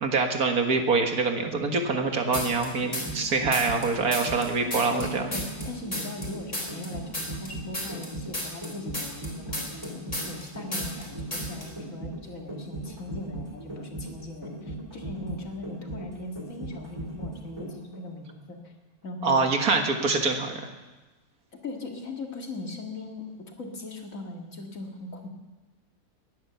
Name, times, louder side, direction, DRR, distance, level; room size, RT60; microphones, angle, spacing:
voice 1, 0.0-5.3 19.2-20.6, right 4 dB, 75° right, 4 dB, 2.1 m, -25 dB
sound 1, 2.1-18.0 18.3-18.4, right 1 dB, 15° right, 3.1 m, -38 dB
sound 2, 2.3-3.3 3.5-6.3 6.5-10.5 10.7-11.1 11.3-11.7, left 1 dB, 30° left, 4.5 m, -33 dB
voice 2, 4.7-18.7 19.0-19.4 21.6-25.3, left 2 dB, 60° left, 2 dB, 2.5 m, -39 dB
19.5 x 10.5 x 7.0 m, 1.2 s
omnidirectional pair, 1.6 m